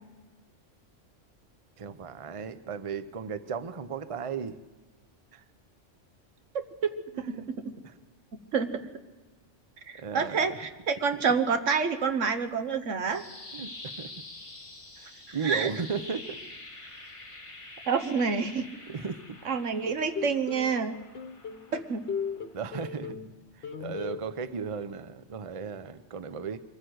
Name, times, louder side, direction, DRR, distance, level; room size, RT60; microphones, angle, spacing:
voice 1, 1.8-4.6 5.3-5.4 7.1-7.5 7.8-7.9 10.0-10.6 13.5-14.1 15.0-16.4 18.9-19.4 22.5-26.6, right 6 dB, 30° right, 12 dB, 0.7 m, -36 dB
voice 2, 6.5-6.9 7.3-7.7 8.5-8.8 9.9-13.2 15.3-15.7 17.9-18.7 19.4-21.0 21.7-22.0, right 5 dB, 80° right, 9 dB, 1.5 m, -28 dB
sound 1, 12.8-22.8, left 2 dB, 25° left, 1.7 m, -47 dB
sound 2, 19.9-20.7 21.1-23.3 23.6-24.2, left 6 dB, 55° left, 1.2 m, -36 dB
23.5 x 15.0 x 7.9 m, 1.2 s
omnidirectional pair, 1.3 m